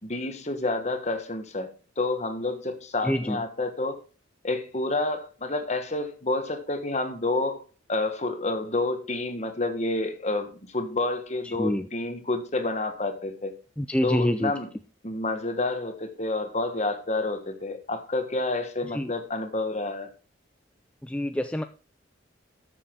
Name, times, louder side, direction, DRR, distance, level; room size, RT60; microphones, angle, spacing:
voice 1, 0.0-4.0 4.4-13.5 14.0-14.7 15.0-20.1, left 2 dB, 35° left, 7 dB, 1.4 m, -29 dB
voice 2, 3.1-3.4 11.6-11.8 13.8-14.5 19.0-19.1 21.1-21.6, equal, 5° left, 8 dB, 0.4 m, -26 dB
13.0 x 6.9 x 3.8 m, 0.35 s
head